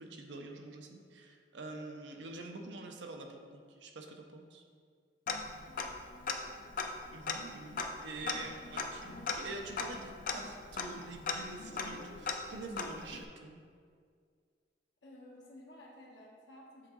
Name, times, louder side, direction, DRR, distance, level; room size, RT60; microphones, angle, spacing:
voice 1, 0.0-4.6 7.1-13.6, right 2 dB, 80° right, 4 dB, 0.7 m, -46 dB
Tick-tock, 5.3-6.0 6.3-6.4 6.7-13.2, left 4 dB, 50° left, 0.5 m, -38 dB
voice 2, 5.6-6.8 15.0-16.9, left 1 dB, 75° left, -3 dB, 1.0 m, -55 dB
7.6 x 3.8 x 3.7 m, 2.1 s
head